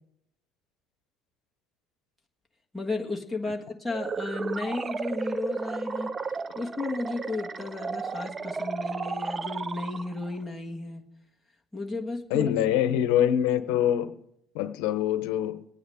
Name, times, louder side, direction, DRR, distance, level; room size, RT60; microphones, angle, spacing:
voice 1, 2.7-6.1 6.5-11.1 11.7-12.5, left 3 dB, ahead, 1.6 m, -33 dB
sound 1, 3.9-10.4, right 4 dB, 20° right, 0.4 m, -33 dB
voice 2, 12.3-14.2 14.5-15.6, left 10 dB, 85° left, 0.8 m, -25 dB
23.5 x 9.3 x 3.5 m
cardioid pair, 145°, 0 cm